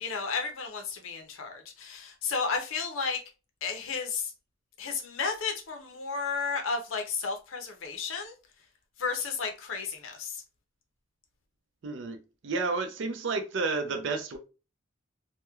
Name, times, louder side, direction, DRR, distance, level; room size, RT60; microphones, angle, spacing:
voice 1, 0.0-3.2 3.6-4.3 4.8-8.4 9.0-10.4, left 5 dB, 75° left, 0.6 m, -33 dB
voice 2, 11.8-14.4, right 3 dB, 60° right, 0.4 m, -31 dB
2.9 x 2.1 x 2.2 m
head